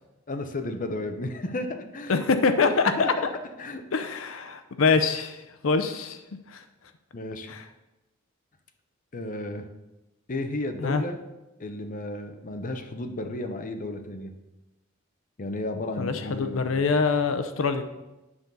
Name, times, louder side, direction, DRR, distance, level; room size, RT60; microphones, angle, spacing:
voice 1, 0.3-2.2 2.7-3.3 3.6-3.8 7.1-7.5 9.1-9.7 10.3-11.2 11.6-14.3 15.4-16.9, left 2 dB, 40° left, 6 dB, 0.7 m, -33 dB
voice 2, 2.1-3.1 3.9-6.2 6.5-6.6 7.5-7.6 10.8-11.0 16.0-17.8, left 4 dB, 75° left, 8 dB, 0.6 m, -24 dB
9.7 x 3.9 x 6.8 m, 1.0 s
head